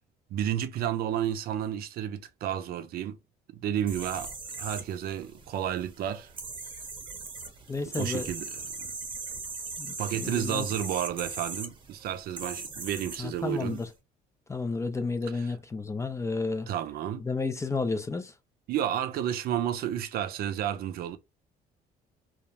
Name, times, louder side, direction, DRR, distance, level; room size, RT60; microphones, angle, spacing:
voice 1, 0.3-3.2 3.5-6.3 8.0-8.9 10.0-13.8 15.4-15.5 16.7-17.2 18.7-21.2, right 10 dB, 65° right, 0.4 m, -31 dB
sound 1, 3.9-13.9, right 4 dB, 30° right, 0.7 m, -40 dB
voice 2, 7.7-8.3 9.8-10.7 13.2-13.9 14.5-16.7 17.2-18.3, left 3 dB, 15° left, 0.3 m, -32 dB
2.3 x 2.0 x 2.8 m
cardioid pair, 110°, 17 cm